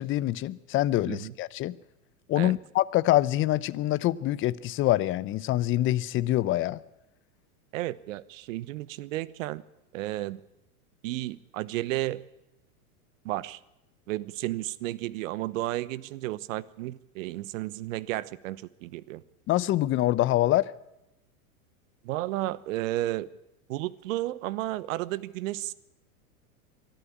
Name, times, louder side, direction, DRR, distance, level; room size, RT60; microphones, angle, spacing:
voice 1, 0.0-1.8 2.3-6.8 19.5-20.7, left 15 dB, 30° left, 0.7 m, -25 dB
voice 2, 7.7-9.6 9.9-10.4 11.0-12.3 13.2-13.6 14.1-19.2 22.0-23.3 23.7-25.7, right 16 dB, 60° right, 1.1 m, -32 dB
23.5 x 13.5 x 8.5 m
hypercardioid pair, 115°, 44 cm